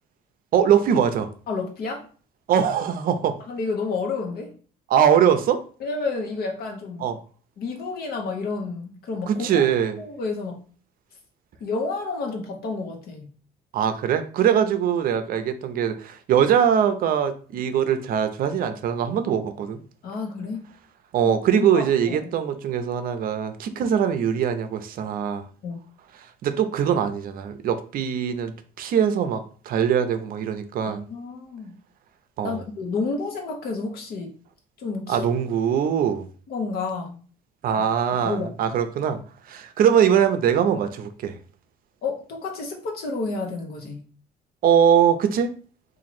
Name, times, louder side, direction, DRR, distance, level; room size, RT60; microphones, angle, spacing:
voice 1, 0.5-1.3 2.5-3.4 4.9-5.6 7.0-7.2 9.3-10.0 13.7-19.8 21.1-25.5 26.4-28.5 28.8-31.1 32.4-32.6 35.1-36.3 37.6-39.2 39.5-41.4 44.6-45.5, right 8 dB, 60° right, 9 dB, 0.5 m, -22 dB
voice 2, 1.5-2.0 3.5-4.5 5.8-7.1 7.6-9.7 10.0-10.6 11.6-13.3 20.0-20.7 21.2-22.3 25.6-25.8 30.9-31.7 32.4-34.3 34.8-35.3 36.5-37.2 37.7-37.8 38.2-38.5 42.0-44.1, left 4 dB, 65° left, 2 dB, 1.0 m, -30 dB
3.0 x 2.5 x 4.2 m, 0.41 s
cardioid pair, 110°, 17 cm